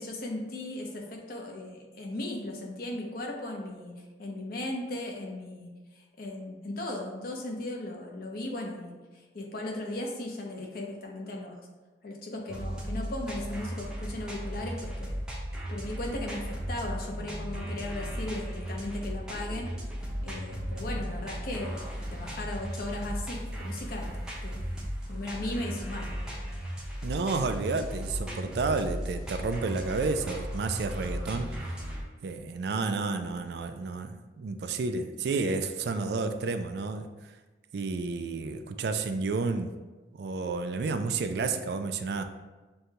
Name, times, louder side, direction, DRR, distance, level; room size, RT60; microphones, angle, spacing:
voice 1, 0.0-11.6 12.0-15.1 15.7-19.7 20.2-24.6 25.1-26.1, left 1 dB, 55° left, 0 dB, 0.7 m, -37 dB
sound 1, 12.5-32.0, equal, 5° right, 0.6 m, -36 dB
voice 2, 27.0-31.5 32.2-37.1 37.7-39.7 40.1-42.2, right 4 dB, 65° right, 8 dB, 0.3 m, -31 dB
6.3 x 2.2 x 2.8 m, 1.2 s
head